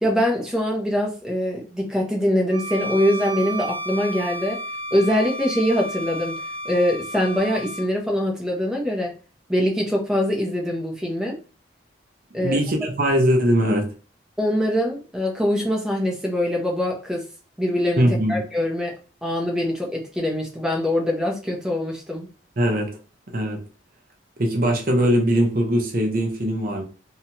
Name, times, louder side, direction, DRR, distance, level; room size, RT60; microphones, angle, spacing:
voice 1, 0.0-4.6 4.9-9.1 9.5-11.4 12.3-12.6 14.4-17.3 17.6-18.9 19.2-22.3, left 1 dB, 5° right, 0 dB, 0.6 m, -23 dB
Bowed string instrument, 2.5-7.9, right 1 dB, 85° right, 0.6 m, -32 dB
voice 2, 12.4-13.9 18.0-18.4 22.6-22.9 23.3-23.6 24.4-26.8, equal, 45° right, 2 dB, 0.7 m, -21 dB
2.7 x 2.2 x 2.8 m, 0.36 s
head